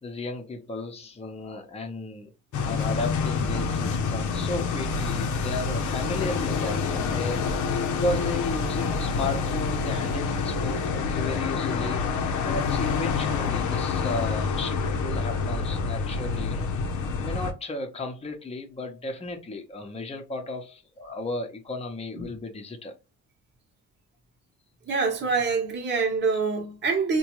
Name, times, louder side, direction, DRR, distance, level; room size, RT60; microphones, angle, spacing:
voice 1, 0.0-2.3 2.6-7.5 7.9-16.7 17.2-22.9, left 2 dB, 20° left, 0.8 m, -34 dB
sound 1, 2.5-17.5, left 5 dB, 75° left, 0.7 m, -27 dB
voice 2, 24.9-27.2, right 4 dB, 35° right, 1.0 m, -25 dB
3.5 x 2.3 x 3.0 m
cardioid pair, 90°, 30 cm